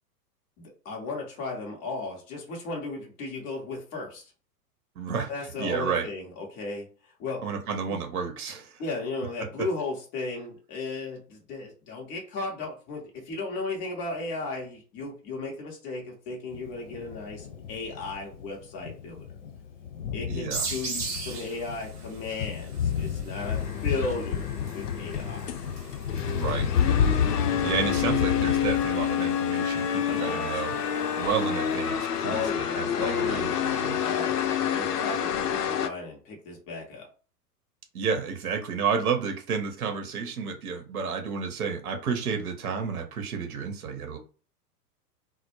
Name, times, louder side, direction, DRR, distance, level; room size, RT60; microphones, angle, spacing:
voice 1, 0.6-4.3 5.3-7.5 7.9-8.0 8.8-19.2 20.1-24.5 24.7-25.5 30.1-30.6 32.2-33.5 34.0-34.4 34.7-37.1, left 3 dB, 20° left, -1 dB, 0.5 m, -35 dB
voice 2, 5.0-5.3 5.6-6.1 7.4-8.8 20.3-20.7 26.3-26.7 27.6-30.8 31.2-32.4 32.7-33.5 33.8-34.1 37.9-44.2, right 6 dB, 65° right, 5 dB, 0.8 m, -31 dB
Thunder, 16.5-29.1, left 8 dB, 55° left, 0.9 m, -31 dB
sound 1, 20.5-31.8, right 4 dB, 20° right, 0.8 m, -41 dB
sound 2, 23.4-35.9, left 8 dB, 75° left, 0.5 m, -28 dB
2.0 x 2.0 x 3.0 m, 0.37 s
figure-of-eight pair, 105°, 48 cm